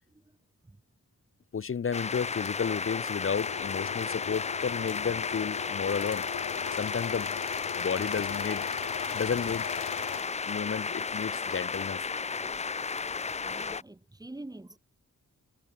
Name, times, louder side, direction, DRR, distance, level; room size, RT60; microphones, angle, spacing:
voice 1, 1.5-6.2 6.7-7.4 7.8-8.6 9.0-9.7 10.5-12.1, left 6 dB, 40° left, 0.8 m, -32 dB
sound 1, 1.9-13.8, left 5 dB, 20° left, 0.4 m, -33 dB
sound 2, 3.4-10.2, left 12 dB, 80° left, 0.5 m, -41 dB
voice 2, 13.4-14.8, right 2 dB, 10° right, 0.9 m, -45 dB
wide cardioid pair, 145°, 32 cm